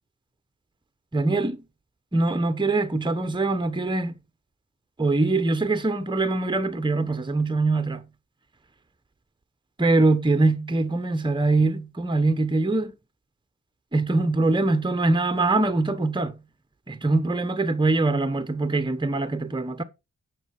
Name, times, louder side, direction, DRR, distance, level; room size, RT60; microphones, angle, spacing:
voice 1, 1.1-1.6 2.1-4.2 5.0-8.0 9.8-12.9 13.9-16.3 16.9-19.8, right 2 dB, 15° right, 1.0 m, -23 dB
11.5 x 6.7 x 4.7 m
wide cardioid pair, 75°, 30 cm